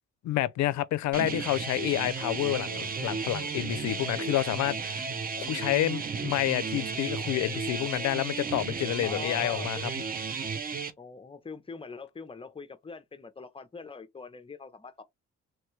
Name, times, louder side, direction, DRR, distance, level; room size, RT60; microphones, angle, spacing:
voice 1, 0.2-5.0 5.4-9.9, left 14 dB, 65° left, 0.4 m, -29 dB
sound 1, 1.1-10.9, right 5 dB, 30° right, 0.5 m, -34 dB
voice 2, 9.0-9.9 11.0-15.0, left 4 dB, 20° left, 0.6 m, -43 dB
3.1 x 2.2 x 3.1 m
cardioid pair, 90°, 30 cm